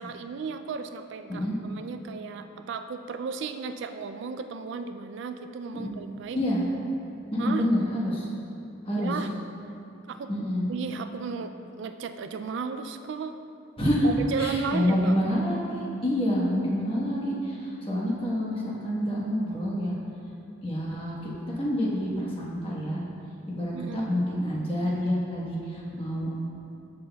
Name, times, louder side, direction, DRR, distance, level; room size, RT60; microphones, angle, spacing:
voice 1, 0.0-6.4 7.4-7.7 9.0-9.3 10.1-10.3 10.7-13.4 14.0-15.1 23.7-24.1, right 5 dB, 60° right, 8 dB, 0.3 m, -35 dB
voice 2, 7.3-8.3 8.8-9.2 10.3-10.6 13.8-14.1 14.4-19.9 20.6-21.2 21.6-23.0 23.5-26.3, equal, 25° left, -5 dB, 1.3 m, -27 dB
13.5 x 6.0 x 2.3 m, 2.7 s
head